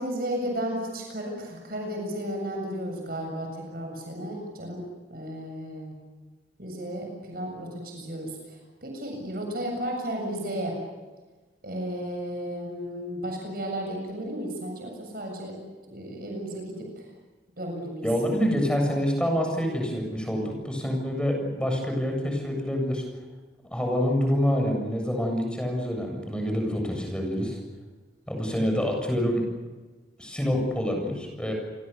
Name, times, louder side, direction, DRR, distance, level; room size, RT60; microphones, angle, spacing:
voice 1, 0.0-4.8 5.1-6.0 6.6-10.8 11.6-15.6 15.9-17.0 17.6-18.0, equal, 55° right, 2 dB, 7.5 m, -33 dB
voice 2, 18.0-23.0 23.7-27.6 28.3-29.5 30.2-31.5, equal, 5° left, 2 dB, 7.6 m, -26 dB
30.0 x 23.5 x 7.0 m, 1.3 s
head